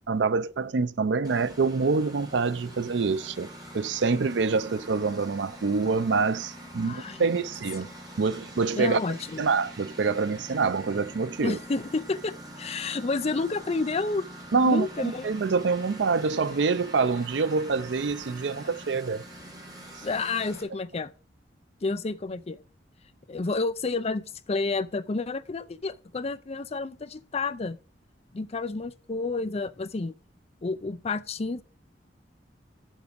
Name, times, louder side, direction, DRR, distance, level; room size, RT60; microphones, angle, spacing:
voice 1, 0.1-3.5 3.7-7.9 8.2-9.0 9.4-11.6 14.5-19.2, right 4 dB, 90° right, 0.5 m, -26 dB
Engine, 1.2-20.6, right 1 dB, 25° right, 2.6 m, -44 dB
voice 2, 6.8-7.3 8.8-9.4 11.4-14.2 14.6-15.3 20.0-21.1 21.8-22.6 23.3-27.8 28.3-30.1 30.6-31.6, left 3 dB, 35° left, 0.5 m, -30 dB
8.0 x 7.3 x 5.1 m
head